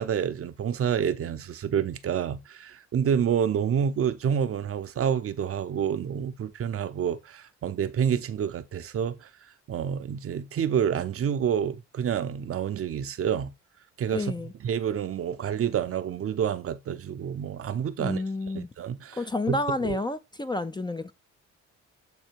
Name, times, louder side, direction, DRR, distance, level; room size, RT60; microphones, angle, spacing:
voice 1, 0.0-9.3 9.7-13.5 14.0-14.3 14.6-18.2 18.5-19.2 19.5-20.0, right 8 dB, 50° right, 0.6 m, -28 dB
voice 2, 14.1-14.5 18.0-18.7 19.2-21.1, left 2 dB, 15° left, 0.4 m, -30 dB
7.7 x 2.7 x 4.5 m
cardioid pair, 90°, 30 cm